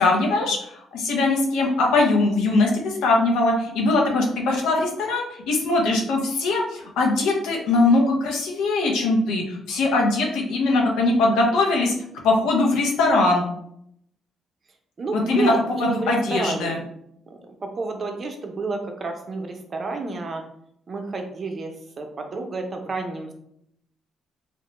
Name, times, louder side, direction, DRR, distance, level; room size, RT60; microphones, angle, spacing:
voice 1, 0.0-11.9 12.2-13.4 15.3-15.5 15.8-16.8, left 2 dB, 90° left, 0 dB, 0.7 m, -21 dB
voice 2, 15.0-16.8 17.3-20.4 20.9-23.3, right 3 dB, 40° right, 4 dB, 0.5 m, -30 dB
2.9 x 2.1 x 2.9 m, 0.72 s
cardioid pair, 90°, 0 cm